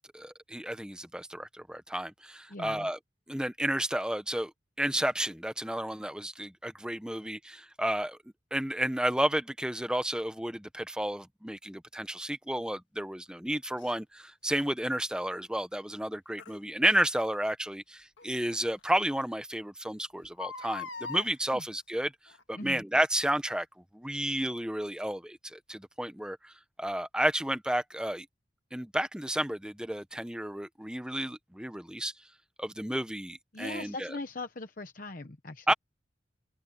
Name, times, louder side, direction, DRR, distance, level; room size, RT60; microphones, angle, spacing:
voice 1, 0.1-3.0 3.3-4.5 4.8-8.2 8.5-22.1 22.5-23.7 23.9-26.5 26.8-28.3 28.7-32.1 32.6-34.2 35.7-35.8, right 1 dB, 5° right, 0.9 m, -31 dB
voice 2, 2.5-2.9 21.5-21.6 22.6-22.8 33.5-35.7, left 2 dB, 45° left, 1.0 m, -40 dB
Crying sobbing, 13.8-13.9 16.4-16.6 18.2-18.3 18.8-18.9 19.1-19.2 20.2-21.3 22.3-22.6 23.2-23.3, left 5 dB, 90° left, 1.8 m, -41 dB
head